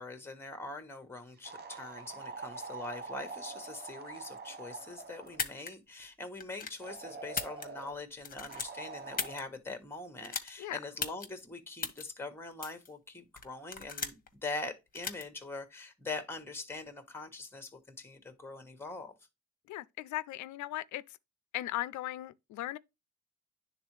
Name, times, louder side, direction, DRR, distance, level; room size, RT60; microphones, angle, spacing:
voice 1, 0.0-19.1, left 3 dB, 10° left, 1.2 m, -43 dB
sound 1, 1.4-5.4 6.8-8.0 8.5-9.4, right 4 dB, 35° right, 0.7 m, -45 dB
sound 2, 5.3-5.7 6.4-6.8 7.2-7.9 8.2-9.4 10.2-10.5 11.0-11.3 11.8-12.0 12.6-12.9 13.4-14.3 14.9-15.2, left 5 dB, 30° left, 1.1 m, -36 dB
voice 2, 19.7-21.0 21.5-22.8, left 15 dB, 75° left, 0.5 m, -37 dB
9.8 x 3.6 x 3.2 m
cardioid pair, 90°, 30 cm